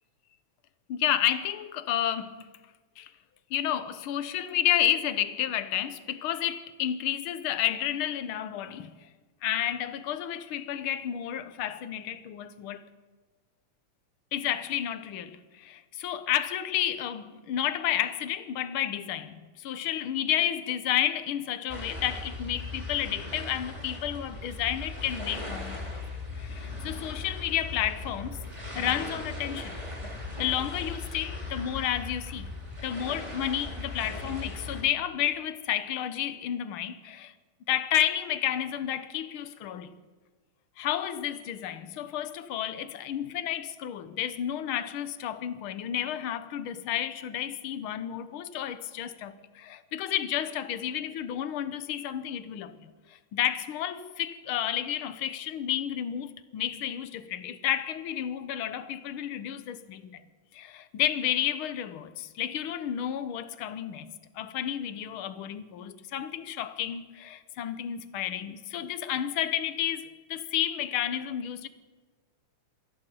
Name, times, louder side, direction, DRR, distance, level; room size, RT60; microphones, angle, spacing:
voice 1, 0.9-2.5 3.0-3.1 3.5-9.0 9.4-12.8 14.3-26.0 26.3-28.4 28.7-29.8 30.4-32.5 32.8-37.3 37.7-39.9 40.8-60.2 60.5-71.7, left 11 dB, 70° left, 1.3 m, -31 dB
sound 1, 21.7-34.8, left 2 dB, 10° right, 3.9 m, -38 dB
22.5 x 15.5 x 8.5 m
omnidirectional pair, 3.6 m